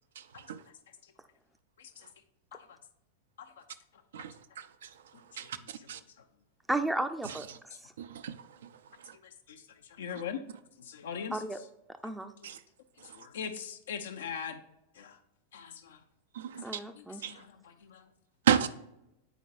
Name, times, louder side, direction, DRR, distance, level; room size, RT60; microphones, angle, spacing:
voice 1, 4.1-4.7 5.4-5.6 5.9-6.0 8.0-8.4 12.4-12.6 16.3-16.8 17.2-17.3 18.5-18.7, right 9 dB, 60° right, 0.4 m, -30 dB
voice 2, 5.3-5.9 9.1-10.4 10.8-11.4 13.0-14.6 14.9-15.2 15.5-16.0 16.5-18.1, left 7 dB, 60° left, 0.6 m, -42 dB
voice 3, 6.7-7.5 7.8-7.9 11.3-11.6 12.0-12.3 16.6-17.2, right 1 dB, 5° right, 0.5 m, -33 dB
9.0 x 4.5 x 2.5 m
figure-of-eight pair, 90°, 0 cm